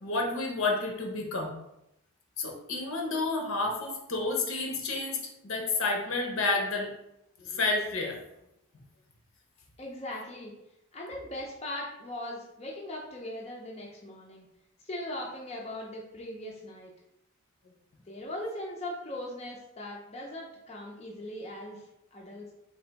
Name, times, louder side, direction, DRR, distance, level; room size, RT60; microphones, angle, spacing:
voice 1, 0.0-1.5 2.4-5.2 5.4-6.9 7.4-8.2, left 3 dB, 70° left, 1 dB, 0.8 m, -30 dB
voice 2, 9.8-10.5 10.9-14.5 14.8-16.9 18.1-21.8 22.1-22.5, left 1 dB, 30° left, -2 dB, 0.5 m, -39 dB
3.4 x 2.6 x 3.9 m, 0.84 s
head